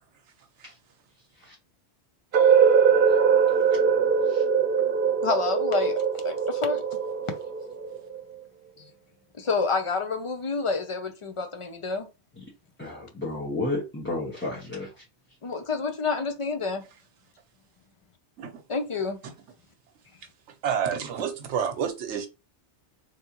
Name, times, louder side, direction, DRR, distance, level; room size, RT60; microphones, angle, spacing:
sound 1, 2.3-8.2, right 6 dB, 55° right, 0.9 m, -22 dB
voice 1, 5.2-6.8 9.4-12.1 15.4-16.8 18.7-19.2, left 4 dB, 35° left, 0.6 m, -28 dB
voice 2, 12.8-15.0, left 2 dB, 10° left, 1.2 m, -32 dB
voice 3, 20.6-22.3, right 7 dB, 80° right, 1.0 m, -29 dB
3.4 x 3.3 x 2.9 m
omnidirectional pair, 1.2 m